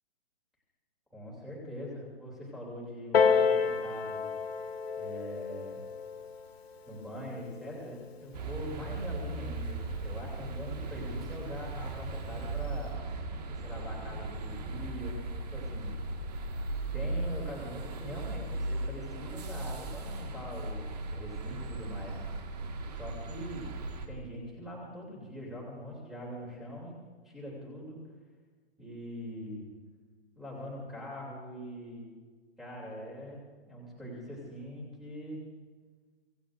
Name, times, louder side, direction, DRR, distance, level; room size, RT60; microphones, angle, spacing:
voice 1, 1.1-4.3 5.0-5.8 6.9-12.9 13.5-16.0 16.9-22.2 22.8-23.7 24.1-27.0 27.2-28.0 28.8-29.7 30.3-32.1 32.6-33.4 33.7-35.4, equal, ahead, -4 dB, 2.9 m, -42 dB
Piano, 3.1-8.3 9.2-9.3, left 5 dB, 65° left, 1.8 m, -30 dB
sound 1, 8.3-24.1, right 2 dB, 35° right, 1.8 m, -37 dB
25.0 x 17.5 x 2.6 m, 1.4 s
hypercardioid pair, 175°, 33 cm